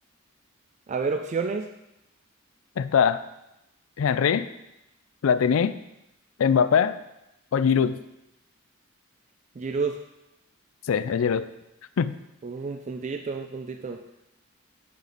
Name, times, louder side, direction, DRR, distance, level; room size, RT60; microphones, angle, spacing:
voice 1, 0.9-1.7 9.6-10.0 12.4-14.0, right 4 dB, 35° right, 5 dB, 0.3 m, -30 dB
voice 2, 2.8-3.2 4.0-4.5 5.2-5.8 6.4-7.0 7.5-8.0 10.9-11.5 12.0-12.1, left 7 dB, 70° left, 14 dB, 0.4 m, -22 dB
9.1 x 5.0 x 4.0 m, 0.90 s
head